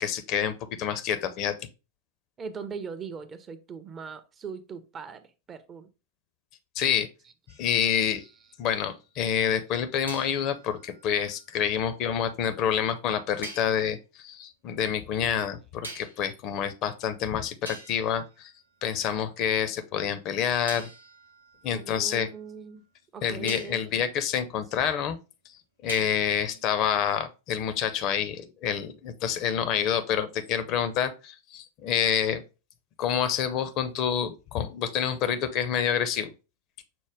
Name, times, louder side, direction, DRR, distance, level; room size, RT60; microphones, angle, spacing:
voice 1, 0.0-1.5 6.8-7.1 7.6-8.2 8.6-18.5 18.8-20.9 21.6-22.3 23.2-25.2 25.8-32.4 33.0-36.3, left 8 dB, 40° left, 0.5 m, -28 dB
voice 2, 2.4-5.9 8.2-8.3 21.7-22.8 23.1-23.8 26.5-26.6, right 5 dB, 25° right, 0.4 m, -40 dB
sound 1, 7.5-8.9 10.1-12.2 13.4-13.8 15.8-16.4 17.2-17.3 17.6-19.3 20.7-22.8 23.5-23.9 25.9-26.5, right 2 dB, 80° right, 0.7 m, -45 dB
5.9 x 2.1 x 3.4 m
figure-of-eight pair, 90°, 0 cm